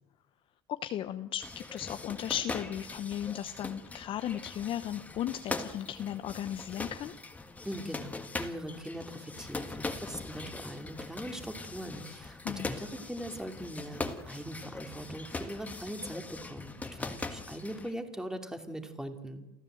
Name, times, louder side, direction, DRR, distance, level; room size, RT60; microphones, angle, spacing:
voice 1, 0.7-7.1 12.4-12.7, left 11 dB, 45° left, 9 dB, 0.9 m, -36 dB
sound 1, 1.4-17.9, left 3 dB, 10° left, 1.7 m, -41 dB
voice 2, 7.6-19.4, equal, 5° right, 6 dB, 2.7 m, -41 dB
29.0 x 14.0 x 7.9 m, 1.0 s
supercardioid pair, 105°, 12 cm